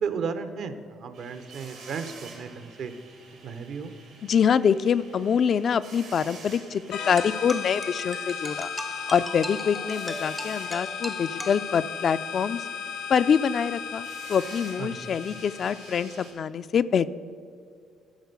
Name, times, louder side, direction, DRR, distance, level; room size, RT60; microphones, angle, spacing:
voice 1, 0.0-2.9 3.4-3.9 14.8-15.1, right 6 dB, 65° right, 10 dB, 0.8 m, -34 dB
sound 1, 1.1-16.3, right 4 dB, 85° right, 2.8 m, -49 dB
voice 2, 4.2-8.7 9.1-12.6 13.1-17.1, left 7 dB, 55° left, 13 dB, 0.3 m, -25 dB
sound 2, 6.9-16.3, left 7 dB, 90° left, 1.2 m, -36 dB
sound 3, 7.2-12.2, equal, 5° right, 0.5 m, -40 dB
13.0 x 4.4 x 6.7 m, 2.3 s
supercardioid pair, 80°, 0 cm